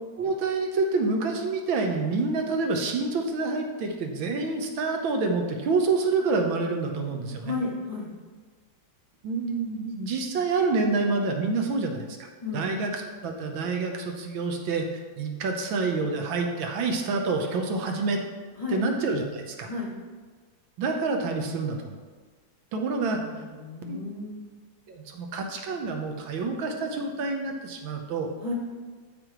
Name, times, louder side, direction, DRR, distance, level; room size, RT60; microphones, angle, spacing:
voice 1, 0.2-7.5 9.2-12.3 12.5-14.9 15.2-18.2 18.7-19.7 20.8-22.0 22.7-23.2 23.8-24.0 24.9-28.3, right 3 dB, 85° right, 3 dB, 1.7 m, -27 dB
voice 2, 7.4-8.1 12.4-12.8 18.6-18.8 19.7-19.9 23.2-24.5 28.4-28.5, left 3 dB, 20° left, -6 dB, 1.4 m, -33 dB
12.5 x 5.3 x 3.1 m, 1.4 s
omnidirectional pair, 2.1 m